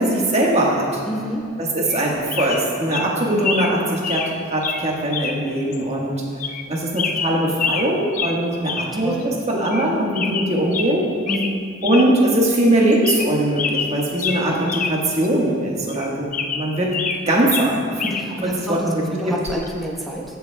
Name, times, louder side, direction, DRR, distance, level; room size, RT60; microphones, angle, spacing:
voice 1, 0.0-1.0 1.6-6.2 6.7-11.1 11.8-16.9 17.3-17.8 18.0-19.3, right 1 dB, 35° right, -3 dB, 1.5 m, -21 dB
voice 2, 1.1-1.4 8.7-9.4 9.8-10.0 11.3-11.6 18.2-18.8 19.1-20.4, equal, ahead, -3 dB, 1.1 m, -29 dB
sound 1, 1.9-2.0 2.3-2.6 2.9-3.1 3.4-3.7 4.0-4.3 4.6-4.8 5.1-5.4 5.7-5.8 6.4-6.7 7.0-7.9 8.1-8.4 8.6-8.9 9.2-9.3 9.6-9.9 10.1-10.9 11.3-11.5 11.8-12.1 12.4-12.5 12.9-13.3 13.6-14.9 15.2-15.3 15.9-17.2 17.5-18.3 19.5-19.7, left 5 dB, 40° left, 0.5 m, -26 dB
16.5 x 7.1 x 2.3 m, 2.3 s
head